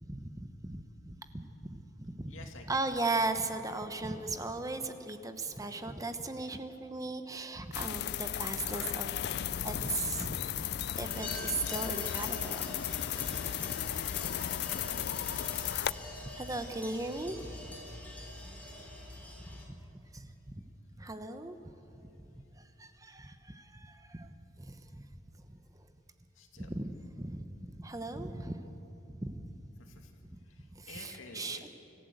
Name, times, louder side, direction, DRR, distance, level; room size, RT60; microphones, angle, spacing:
voice 1, 0.0-2.4 2.7-9.1 9.6-10.6 11.0-13.7 16.2-17.8 19.7-20.5 21.0-21.6 21.9-24.3 24.6-25.1 25.5-25.9 26.6-28.6 29.1-29.6 30.7-31.6, right 2 dB, 15° right, 8 dB, 0.9 m, -38 dB
voice 2, 2.3-2.8 8.7-10.5 26.3-26.7 29.8-31.7, left 3 dB, 90° left, 3 dB, 2.4 m, -52 dB
sound 1, 7.7-15.9, left 10 dB, 55° left, 0.4 m, -35 dB
sound 2, 11.1-19.6, left 1 dB, 10° left, 3.3 m, -45 dB
26.0 x 14.0 x 8.0 m, 2.9 s
head